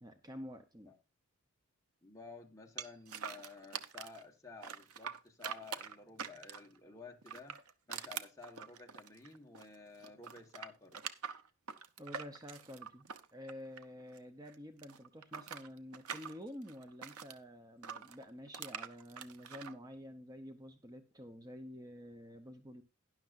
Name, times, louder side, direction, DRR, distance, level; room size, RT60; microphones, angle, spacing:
voice 1, 0.0-0.9 12.0-22.8, equal, 15° right, 0.7 m, -49 dB
voice 2, 2.0-7.6 7.9-11.0, left 4 dB, 15° left, 1.4 m, -53 dB
sound 1, 2.8-4.2 4.6-6.8 7.2-9.8 10.0-14.2 14.5-17.4 17.8-19.7, right 7 dB, 85° right, 0.9 m, -45 dB
12.0 x 10.5 x 2.5 m
head